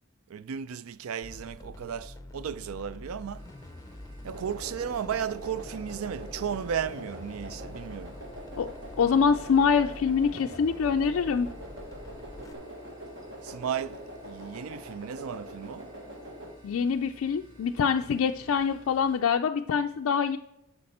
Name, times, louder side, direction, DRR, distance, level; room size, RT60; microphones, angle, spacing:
voice 1, 0.3-3.5 4.2-8.2 13.4-15.9, right 8 dB, 70° right, 0.4 m, -34 dB
sound 1, 1.2-12.5, left 1 dB, 15° left, 0.6 m, -45 dB
sound 2, 3.3-19.2, equal, 20° right, 2.3 m, -54 dB
sound 3, 4.3-16.5, equal, 50° right, 1.5 m, -44 dB
voice 2, 9.0-11.5 16.6-20.4, left 6 dB, 65° left, 0.3 m, -25 dB
11.0 x 6.5 x 4.3 m
head